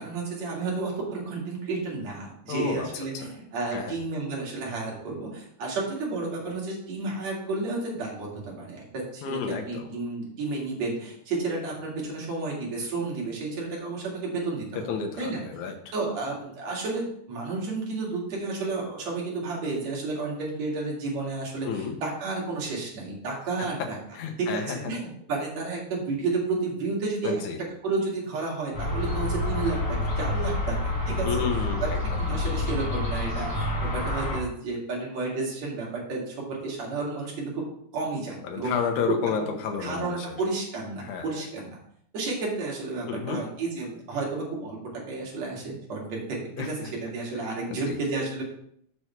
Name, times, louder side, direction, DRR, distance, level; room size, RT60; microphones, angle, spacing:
voice 1, 0.0-14.9 15.2-15.4 15.9-24.0 24.4-27.4 27.8-31.6 32.2-37.6 37.9-38.7 39.8-41.8 42.1-44.8 45.1-48.4, right 3 dB, 60° right, -3 dB, 3.4 m, -31 dB
voice 2, 2.5-2.9 3.1-3.3 3.7-3.9 9.2-9.9 14.9-15.8 21.6-22.0 23.6-23.7 24.1-24.9 27.2-27.6 31.2-32.0 38.4-40.4 41.0-41.2 43.1-43.4 46.6-46.7 47.9-48.0, left 6 dB, 75° left, 4 dB, 2.4 m, -31 dB
sound 1, 28.7-34.4, left 2 dB, 40° left, 2.3 m, -28 dB
7.0 x 6.4 x 4.5 m, 0.68 s
omnidirectional pair, 3.5 m